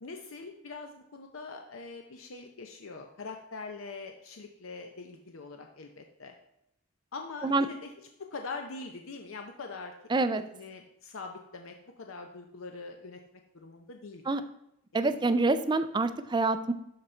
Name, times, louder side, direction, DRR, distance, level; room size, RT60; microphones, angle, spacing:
voice 1, 0.0-6.3 7.1-7.9 8.2-9.9 10.5-13.2 13.5-14.4, left 4 dB, 80° left, 4 dB, 0.7 m, -43 dB
voice 2, 10.1-10.4 14.3-14.4 14.9-16.7, right 3 dB, 20° right, 11 dB, 0.4 m, -26 dB
12.0 x 4.0 x 4.4 m, 0.79 s
head